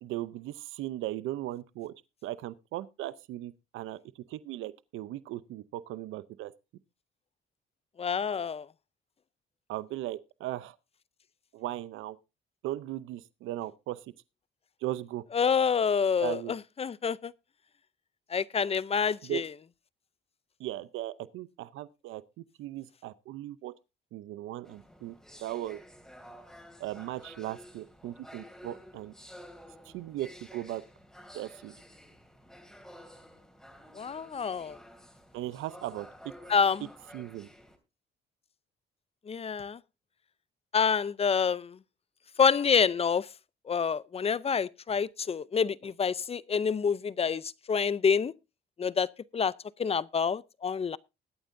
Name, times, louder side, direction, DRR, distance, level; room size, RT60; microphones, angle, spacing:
voice 1, 0.0-1.9 2.2-4.0 4.3-6.5 9.7-10.7 11.5-12.2 12.6-14.0 14.8-15.2 16.2-16.5 19.2-19.4 20.6-22.2 22.6-23.7 24.1-25.1 25.4-25.8 26.8-29.1 29.9-30.8 31.3-31.7 35.3-36.3 37.1-37.5, right 14 dB, 90° right, 0.6 m, -37 dB
voice 2, 8.0-8.7 15.3-17.3 18.3-19.5 34.0-34.8 36.5-36.9 39.3-39.8 40.7-41.8 42.4-43.3 43.7-48.3 48.8-49.5 49.8-51.0, left 6 dB, 30° left, 0.5 m, -27 dB
sound 1, 24.6-37.8, equal, ahead, 2.8 m, -52 dB
21.0 x 9.0 x 2.6 m
cardioid pair, 90°, 20 cm